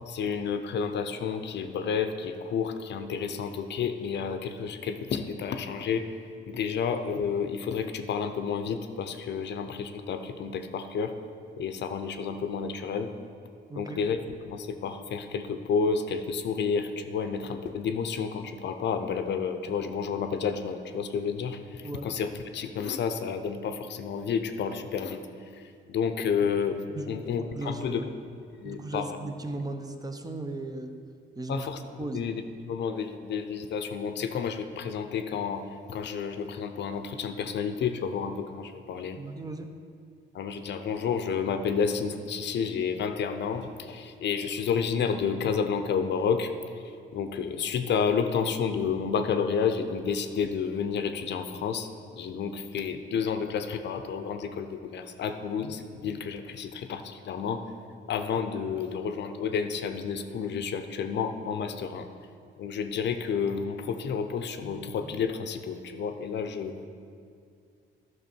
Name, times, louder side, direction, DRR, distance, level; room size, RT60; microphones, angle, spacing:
voice 1, 0.1-6.2 6.5-11.2 11.6-13.1 13.8-25.2 25.5-25.6 25.9-26.8 27.1-28.0 28.6-29.2 31.5-31.8 32.1-39.2 40.3-46.5 47.1-57.6 58.1-62.1 62.6-66.7, left 6 dB, 60° left, 8 dB, 0.6 m, -30 dB
voice 2, 13.7-14.0 21.8-22.1 26.9-28.0 28.6-31.0 31.4-31.7 31.9-32.2 39.2-39.7, right 2 dB, 20° right, 6 dB, 0.7 m, -37 dB
11.0 x 6.0 x 4.5 m, 2.3 s
cardioid pair, 90°, 20 cm